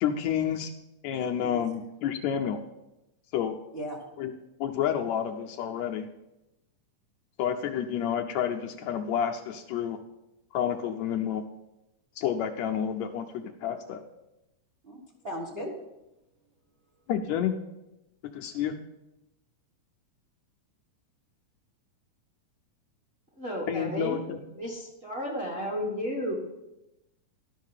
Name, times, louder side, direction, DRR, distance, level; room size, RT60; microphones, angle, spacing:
voice 1, 0.0-0.7 1.0-2.6 3.3-3.6 4.2-4.3 4.6-6.1 7.4-10.0 10.5-11.4 12.2-14.0 17.1-17.5 18.3-18.7 23.7-24.4, left 9 dB, 75° left, 3 dB, 1.7 m, -29 dB
voice 2, 1.2-1.6 3.7-4.1 14.8-15.8, equal, 75° right, -3 dB, 0.5 m, -38 dB
voice 3, 23.4-26.3, equal, 30° right, -3 dB, 1.2 m, -33 dB
12.0 x 5.7 x 5.5 m, 0.93 s
omnidirectional pair, 3.5 m